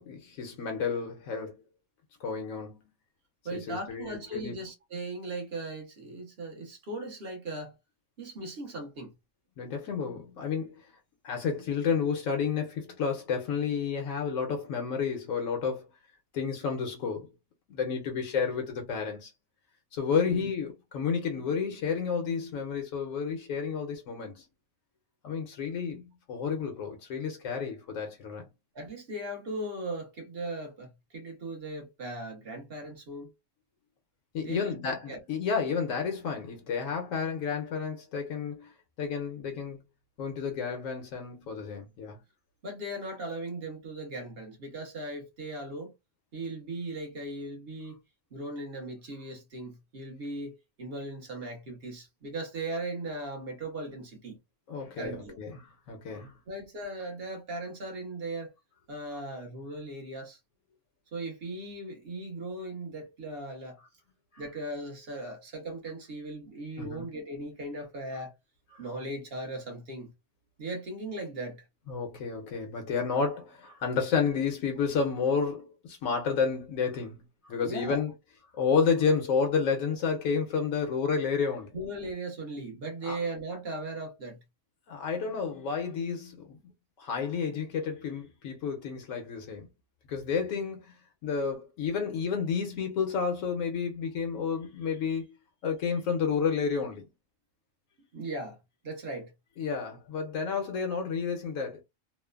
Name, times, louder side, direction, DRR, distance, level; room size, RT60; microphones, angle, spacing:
voice 1, 0.0-1.6 2.2-2.8 3.5-4.6 9.6-10.9 11.2-15.9 16.3-17.3 17.7-19.3 19.9-24.4 25.2-28.5 34.3-38.7 39.0-39.8 40.2-42.2 54.7-56.4 64.3-64.4 66.8-67.1 68.7-68.8 71.9-78.1 78.5-81.7 83.0-83.2 84.9-86.6 87.0-89.7 90.1-90.9 91.2-95.3 95.6-97.1 99.6-101.8, left 6 dB, 80° left, 1.1 m, -31 dB
voice 2, 3.4-7.7 8.2-9.1 20.2-20.4 28.7-33.3 34.4-35.2 42.6-45.9 46.3-48.0 48.3-54.4 55.0-55.4 56.5-58.5 58.9-60.4 61.1-63.8 64.4-68.3 68.8-70.1 70.6-71.6 77.6-78.0 81.7-84.4 98.1-98.6 98.8-99.3, right 2 dB, 50° right, 1.0 m, -38 dB
3.0 x 2.0 x 2.3 m
omnidirectional pair, 1.4 m